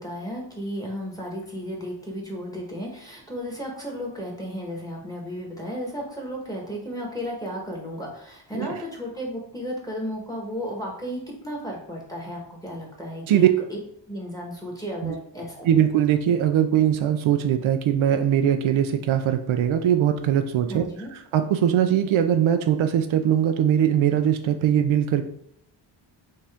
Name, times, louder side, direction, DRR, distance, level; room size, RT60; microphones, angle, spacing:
voice 1, 0.0-13.8 14.1-15.8 20.7-21.1, equal, 10° left, -2 dB, 1.2 m, -34 dB
voice 2, 15.6-20.8 21.3-25.2, right 10 dB, 90° right, 7 dB, 0.5 m, -21 dB
5.4 x 2.5 x 3.4 m, 0.71 s
wide cardioid pair, 115°, 46 cm